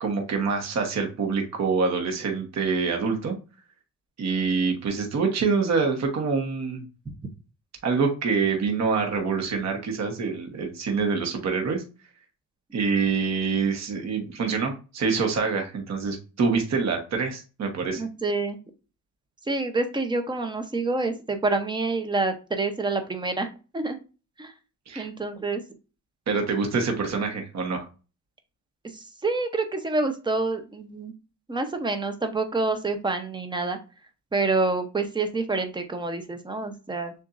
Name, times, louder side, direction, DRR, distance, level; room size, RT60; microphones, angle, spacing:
voice 1, 0.0-3.3 4.2-6.8 7.8-11.8 12.7-18.0 24.9-25.1 26.3-27.8, right 5 dB, 55° right, 3 dB, 1.1 m, -26 dB
voice 2, 17.9-18.6 19.5-24.0 24.4-24.5 25.0-25.6 28.9-31.1 31.5-33.8 34.3-37.1, right 3 dB, 15° right, 7 dB, 0.7 m, -27 dB
6.8 x 2.5 x 2.5 m, 0.33 s
cardioid pair, 130°, 32 cm